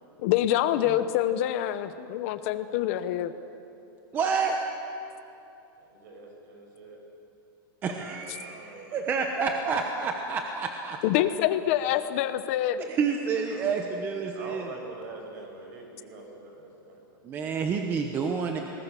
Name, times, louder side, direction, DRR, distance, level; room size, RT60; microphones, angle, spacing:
voice 1, 0.2-3.3 11.0-12.8, left 12 dB, 35° left, 12 dB, 0.7 m, -26 dB
voice 2, 4.1-4.6 7.8-11.0 12.8-14.7 17.2-18.6, right 5 dB, 15° right, 3 dB, 1.0 m, -29 dB
voice 3, 5.8-7.0 8.0-9.4 13.4-14.0 14.3-17.2, right 3 dB, 50° right, 2 dB, 6.3 m, -45 dB
28.5 x 20.0 x 6.8 m, 2.9 s
supercardioid pair, 175°, 12 cm